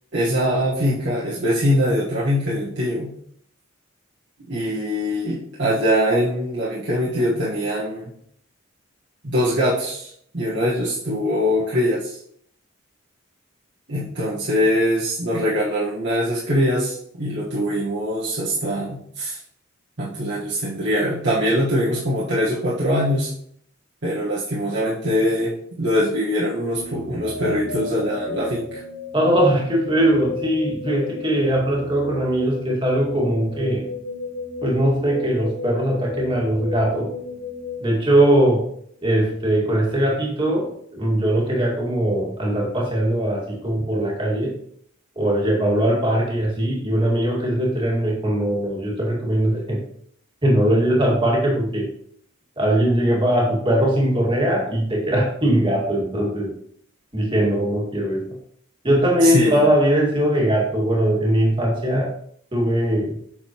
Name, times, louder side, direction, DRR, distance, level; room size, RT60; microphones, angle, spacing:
voice 1, 0.1-3.1 4.5-8.1 9.2-12.2 13.9-19.4 20.0-23.3 24.0-25.5 25.8-28.8 59.2-59.6, equal, 55° right, -7 dB, 1.5 m, -22 dB
sound 1, 26.7-38.8, left 3 dB, 50° left, 1.1 m, -34 dB
voice 2, 29.1-33.9 34.6-37.1 37.8-38.7 39.0-44.5 45.2-49.8 50.4-51.9 52.6-56.5 57.1-58.3 58.8-62.1 62.5-63.2, right 1 dB, 25° right, -3 dB, 2.1 m, -20 dB
7.6 x 6.7 x 3.0 m, 0.66 s
head